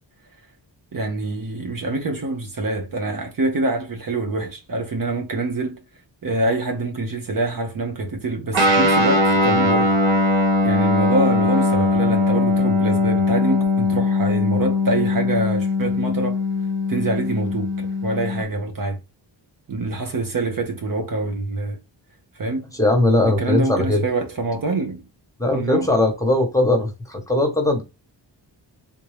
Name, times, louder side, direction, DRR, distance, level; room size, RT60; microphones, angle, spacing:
voice 1, 0.9-5.8 6.2-9.9 10.6-16.4 16.9-19.0 19.7-21.8 22.4-22.7 23.2-25.0 25.5-25.9, right 2 dB, 50° right, 0.7 m, -25 dB
Guitar, 8.5-18.4, left 2 dB, 85° right, 1.2 m, -20 dB
voice 2, 22.8-24.0 25.4-27.8, left 1 dB, 5° left, 1.0 m, -19 dB
3.5 x 2.6 x 3.2 m
wide cardioid pair, 100°, 45 cm